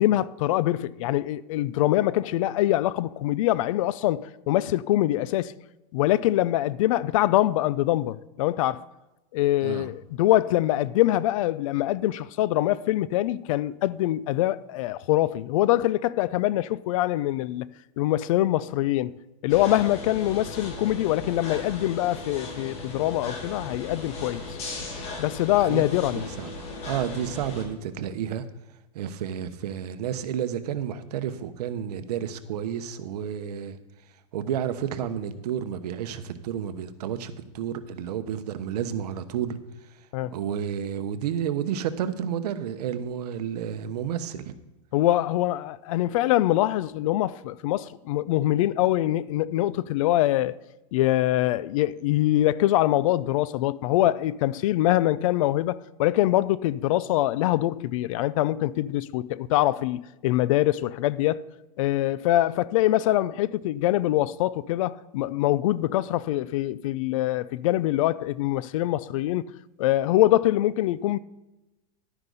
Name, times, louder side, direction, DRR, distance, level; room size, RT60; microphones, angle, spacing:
voice 1, 0.0-5.5 5.9-8.8 9.3-17.7 18.0-19.1 19.4-24.4 25.2-26.3 40.1-40.4 44.9-50.6 50.9-61.4 61.8-69.4 69.8-71.2, left 15 dB, 55° left, 0.4 m, -24 dB
sound 1, 19.5-27.6, left 3 dB, 30° left, 2.1 m, -37 dB
voice 2, 26.1-28.4 28.9-33.8 34.3-39.6 40.3-44.5, right 9 dB, 75° right, 1.0 m, -31 dB
11.5 x 9.8 x 4.0 m
supercardioid pair, 155°, 21 cm